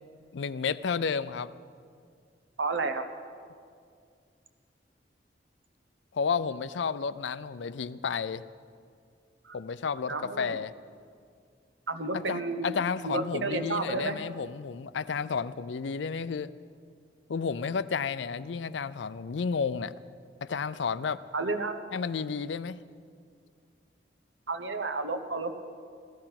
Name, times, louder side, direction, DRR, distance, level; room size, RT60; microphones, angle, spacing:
voice 1, 0.3-1.5 6.1-8.4 9.5-10.7 12.1-16.5 17.3-19.9 20.4-21.2 21.9-22.8, left 5 dB, 80° left, 16 dB, 0.5 m, -31 dB
voice 2, 2.6-3.0 9.4-9.6 10.1-10.6 11.9-12.7 13.0-14.2 21.3-21.8 24.5-25.5, right 3 dB, 90° right, 8 dB, 1.1 m, -31 dB
15.5 x 14.0 x 5.9 m, 2.2 s
head